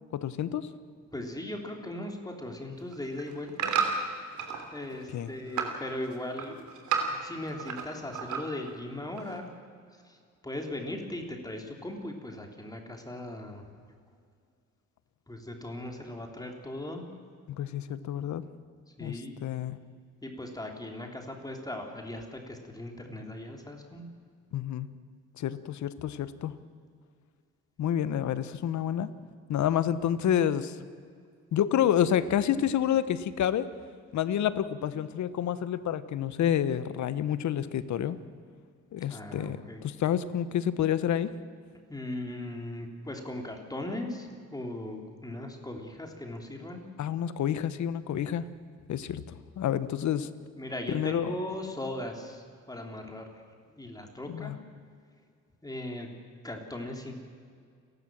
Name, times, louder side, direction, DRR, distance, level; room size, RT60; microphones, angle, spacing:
voice 1, 0.1-0.7 5.1-5.3 17.5-18.4 19.0-19.8 24.5-24.9 25.4-26.5 27.8-29.1 29.5-30.8 31.5-33.7 34.1-38.2 38.9-41.3 47.0-48.5 48.9-50.3 50.9-51.3 54.3-54.6, left 10 dB, 70° left, 14 dB, 1.2 m, -29 dB
voice 2, 1.1-3.7 4.7-6.6 7.2-9.5 9.9-10.2 10.4-13.7 15.3-17.1 18.9-19.3 20.2-24.1 39.1-39.8 41.9-46.8 50.5-53.4 53.8-54.5 55.6-56.1 56.4-57.1, left 1 dB, 10° left, 3 dB, 3.2 m, -38 dB
sound 1, 2.8-4.6 5.0-5.8 6.1-7.9 8.1-8.7 9.2-9.3, right 6 dB, 75° right, 3.0 m, -31 dB
29.5 x 12.0 x 7.5 m, 2.1 s
cardioid pair, 90°, 30 cm